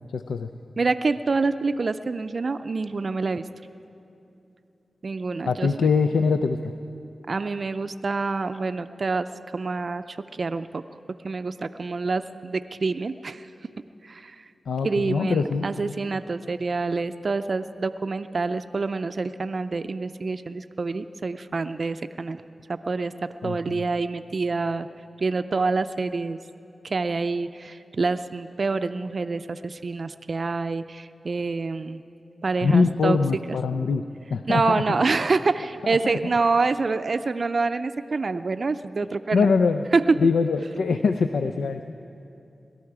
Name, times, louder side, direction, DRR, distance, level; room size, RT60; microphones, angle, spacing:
voice 1, 0.1-0.5 5.4-6.6 14.7-15.9 23.4-23.9 32.6-34.0 34.3-35.0 35.9-36.0 39.3-39.8 40.2-41.8, left 4 dB, 90° left, 8 dB, 0.4 m, -23 dB
voice 2, 0.8-3.4 5.0-5.9 7.3-9.3 9.5-10.8 11.2-13.5 14.0-14.4 14.8-22.4 22.7-24.9 25.2-26.4 26.8-32.0 32.4-33.2 33.5-33.6 34.5-39.5 39.9-40.2, right 3 dB, 60° right, 10 dB, 0.4 m, -26 dB
22.0 x 12.5 x 4.8 m, 2.7 s
cardioid pair, 45°, 0 cm